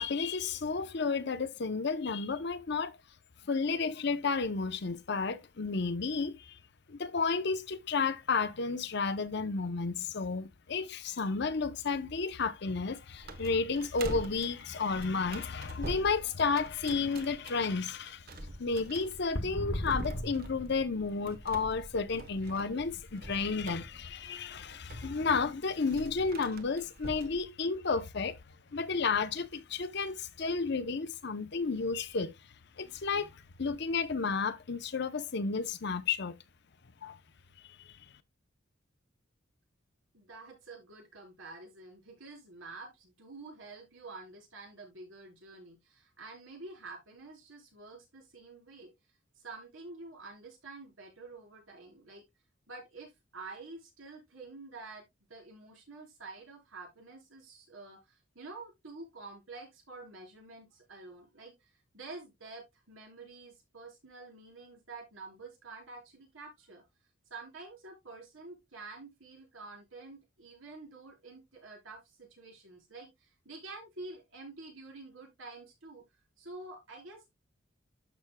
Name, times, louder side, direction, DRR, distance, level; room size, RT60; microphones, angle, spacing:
voice 1, 0.0-3.0 3.4-6.6 6.9-18.3 18.6-28.4 28.7-32.3 32.8-36.3 37.0-37.2 37.6-38.1, left 4 dB, 55° left, 0.7 m, -32 dB
sound 1, 13.2-27.4, right 1 dB, 50° right, 1.1 m, -45 dB
sound 2, 19.3-22.0, equal, 80° left, 1.4 m, -38 dB
voice 2, 40.1-48.9 49.4-52.2 52.7-66.8 67.3-76.0 76.4-77.3, right 3 dB, 80° right, 4.3 m, -48 dB
12.5 x 6.0 x 2.2 m
head